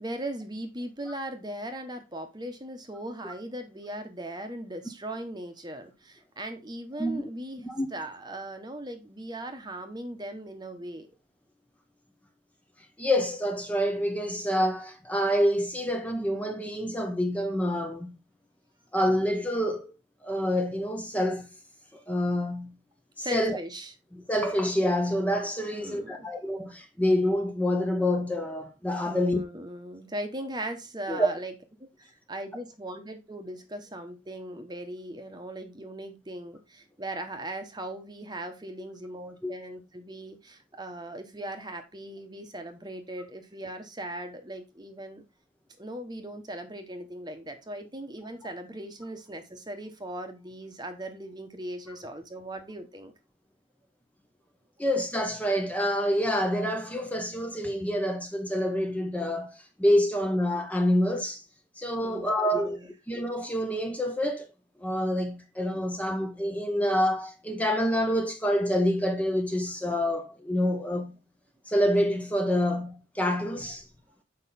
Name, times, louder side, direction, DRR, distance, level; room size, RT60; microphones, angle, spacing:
voice 1, 0.0-11.1 23.2-23.9 25.7-26.3 29.0-31.5 31.8-45.2 45.8-53.1 54.8-54.9 62.0-62.9, right 1 dB, 20° right, 1.1 m, -39 dB
voice 2, 13.0-18.2 18.9-19.9 20.2-21.5 22.1-22.7 23.2-23.6 24.1-29.4 31.1-31.3 39.4-39.5 54.8-61.4 61.8-62.8 63.1-64.5 64.8-71.1 71.7-73.8, equal, 10° left, 0.9 m, -27 dB
7.3 x 5.3 x 4.2 m
head